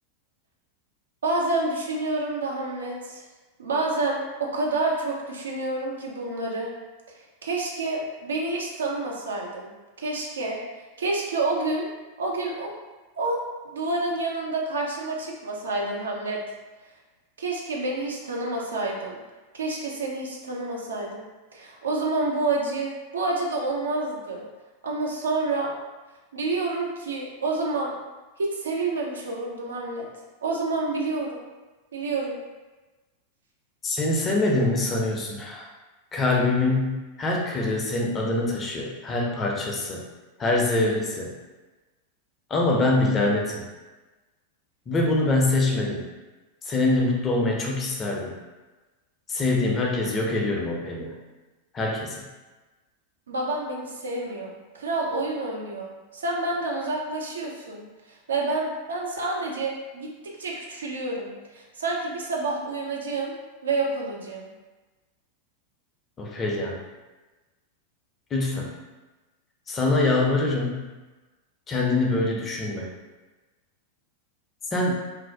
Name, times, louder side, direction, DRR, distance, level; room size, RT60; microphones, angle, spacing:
voice 1, 1.2-3.2 3.6-6.7 7.4-9.7 10.0-10.6 11.0-11.9 12.2-12.7 13.2-13.4 13.7-16.4 17.4-19.2 19.5-21.3 21.5-24.4 24.8-25.7 26.3-27.9 28.4-30.1 30.4-31.4 31.9-32.4 53.3-57.9 58.3-63.3 63.6-64.5, right 2 dB, 70° right, -1 dB, 0.4 m, -28 dB
voice 2, 33.8-35.7 36.1-40.0 40.4-41.3 42.5-43.6 44.9-46.0 46.7-48.3 49.3-51.2 51.7-52.2 66.2-66.8 68.3-68.7 69.7-70.8 71.7-72.9 74.7-74.9, left 2 dB, 25° left, -1 dB, 0.5 m, -24 dB
2.4 x 2.0 x 2.6 m, 1.2 s
figure-of-eight pair, 90°, 0 cm